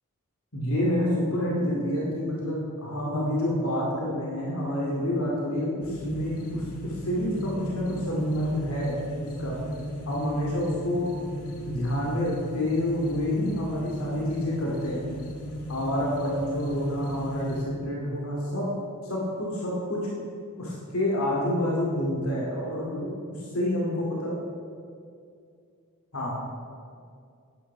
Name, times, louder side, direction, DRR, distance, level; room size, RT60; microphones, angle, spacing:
voice 1, 0.5-9.6 10.1-11.2 11.6-15.0 15.7-18.7 19.0-20.1 20.6-23.1 23.5-24.3 26.1-26.3, left 1 dB, 70° left, -4 dB, 2.4 m, -28 dB
sound 1, 5.8-17.7, equal, 90° left, 1.7 m, -36 dB
10.5 x 9.2 x 6.0 m, 2.3 s
head